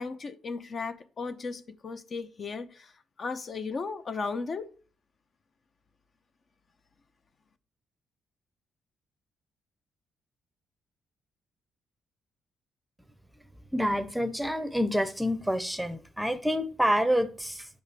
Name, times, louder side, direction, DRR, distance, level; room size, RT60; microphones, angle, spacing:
voice 1, 0.0-2.9 3.2-4.7, left 4 dB, 45° left, 0.8 m, -35 dB
voice 2, 13.7-17.7, equal, 5° right, 0.8 m, -27 dB
9.9 x 4.3 x 3.5 m
cardioid pair, 90°, 0 cm